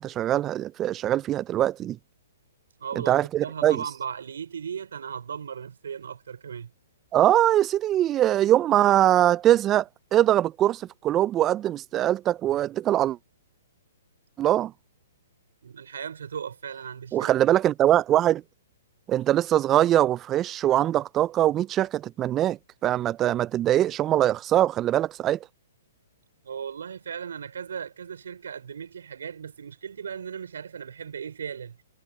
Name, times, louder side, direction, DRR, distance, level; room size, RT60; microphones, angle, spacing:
voice 1, 0.0-2.0 3.0-3.8 7.1-13.2 14.4-14.7 17.1-18.4 19.1-25.4, right 12 dB, 25° right, 0.5 m, -22 dB
voice 2, 2.8-6.7 15.6-17.3 26.4-31.8, right 7 dB, 75° right, 5.4 m, -37 dB
hypercardioid pair, 130°, 0 cm